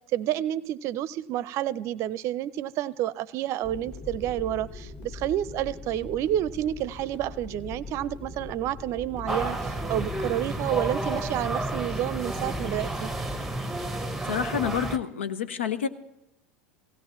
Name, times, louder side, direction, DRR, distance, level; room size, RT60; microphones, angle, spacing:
voice 1, 0.1-13.1, right 12 dB, 50° right, 19 dB, 0.6 m, -29 dB
sound 1, 3.6-13.6, left 3 dB, 35° left, 5.2 m, -41 dB
sound 2, 9.3-15.0, right 1 dB, 5° right, 1.0 m, -31 dB
voice 2, 14.3-15.9, left 8 dB, 80° left, 13 dB, 0.8 m, -28 dB
17.0 x 16.0 x 3.1 m, 0.85 s
hypercardioid pair, 85°, 6 cm